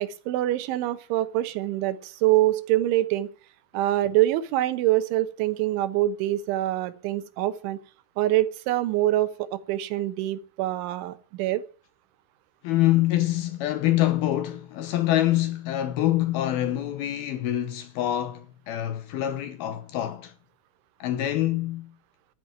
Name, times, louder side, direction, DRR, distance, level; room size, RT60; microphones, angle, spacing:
voice 1, 0.0-3.3 3.7-7.8 8.2-11.6, right 15 dB, 90° right, 3.5 m, -25 dB
voice 2, 12.6-20.3 21.0-21.9, left 14 dB, 75° left, 2.4 m, -25 dB
12.5 x 10.5 x 8.9 m
omnidirectional pair, 5.3 m